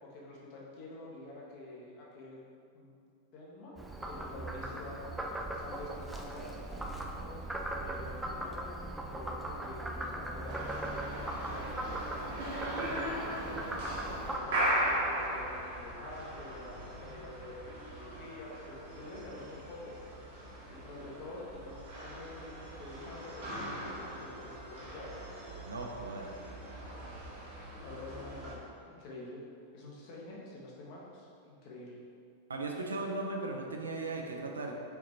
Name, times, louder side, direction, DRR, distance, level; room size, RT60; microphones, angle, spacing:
voice 1, 0.0-2.4 2.7-2.9 3.3-3.7 4.1-8.7 9.1-10.6 11.1-13.7 14.2-19.9 20.7-25.1 27.8-29.4 29.7-32.0, left 2 dB, 45° left, -4 dB, 1.0 m, -47 dB
Frog, 3.8-14.4, right 1 dB, 5° right, 0.4 m, -39 dB
sound 1, 10.5-28.5, right 1 dB, 55° right, 1.0 m, -39 dB
voice 2, 25.6-26.3 32.5-34.7, right 2 dB, 75° right, 2 dB, 0.4 m, -37 dB
5.0 x 3.0 x 3.0 m, 2.3 s
figure-of-eight pair, 90°, 0 cm